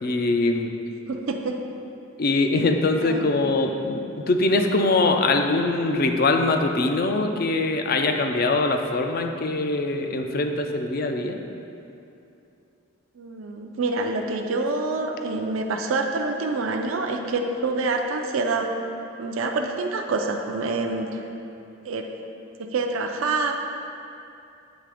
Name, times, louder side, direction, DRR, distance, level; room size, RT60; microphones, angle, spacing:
voice 1, 0.0-0.7 2.2-11.4, left 2 dB, 45° left, 5 dB, 0.4 m, -23 dB
voice 2, 1.1-1.5 3.0-3.4 13.2-18.7 19.2-21.2 21.8-22.0 22.7-23.5, right 3 dB, 70° right, 3 dB, 0.4 m, -26 dB
8.1 x 3.3 x 4.9 m, 2.7 s
head